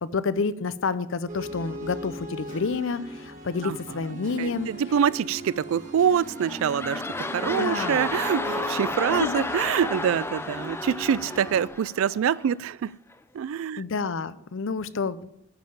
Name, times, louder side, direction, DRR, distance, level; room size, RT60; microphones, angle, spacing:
voice 1, 0.0-4.7 7.4-8.1 9.1-9.4 13.8-15.3, left 4 dB, 60° left, 0.5 m, -29 dB
sound 1, 1.3-11.7, equal, 35° right, 2.0 m, -39 dB
voice 2, 4.4-12.9 13.3-13.8, right 8 dB, 65° right, 0.3 m, -25 dB
sound 2, 6.0-12.6 13.1-13.2, left 2 dB, 10° left, 0.5 m, -33 dB
10.5 x 5.7 x 8.7 m
head